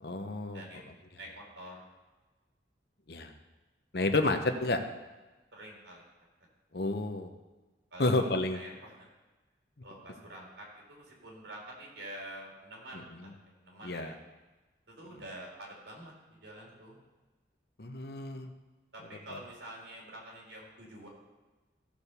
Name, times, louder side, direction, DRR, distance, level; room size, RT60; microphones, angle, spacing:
voice 1, 0.0-0.6 3.1-3.3 3.9-4.8 6.7-7.3 8.0-8.6 13.8-14.1 17.8-18.5, left 2 dB, 60° left, 6 dB, 0.9 m, -30 dB
voice 2, 1.2-1.8 4.1-4.3 5.5-6.1 7.9-9.1 9.8-14.2 14.9-17.0 18.9-21.1, right 1 dB, 75° right, -2 dB, 3.8 m, -47 dB
15.0 x 5.3 x 6.7 m, 1.2 s
head